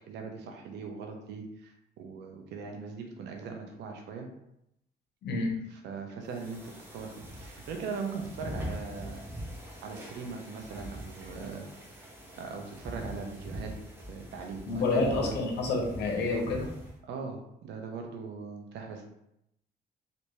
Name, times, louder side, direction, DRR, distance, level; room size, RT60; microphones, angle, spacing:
voice 1, 0.1-4.3 5.8-9.3 9.8-12.1 12.4-13.7 14.1-15.4 17.0-19.1, right 5 dB, 85° right, 3 dB, 0.6 m, -40 dB
voice 2, 5.2-5.6 14.7-16.7, left 3 dB, 75° left, 0 dB, 0.9 m, -29 dB
sound 1, 6.3-17.0, equal, 10° right, 0.8 m, -43 dB
3.3 x 2.6 x 3.0 m, 0.81 s
cardioid pair, 95°, 17 cm